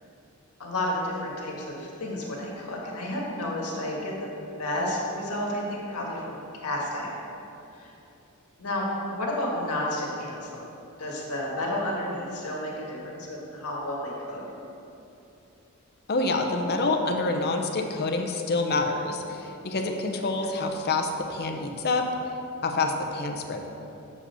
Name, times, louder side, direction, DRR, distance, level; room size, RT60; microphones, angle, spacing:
voice 1, 0.6-4.3 4.6-7.2 7.7-7.9 8.6-10.6 11.0-14.4 20.4-20.5, left 1 dB, 90° left, -3 dB, 1.7 m, -31 dB
voice 2, 16.1-22.1 22.6-23.7, left 3 dB, 45° left, 3 dB, 0.7 m, -27 dB
7.1 x 5.0 x 6.9 m, 2.8 s
head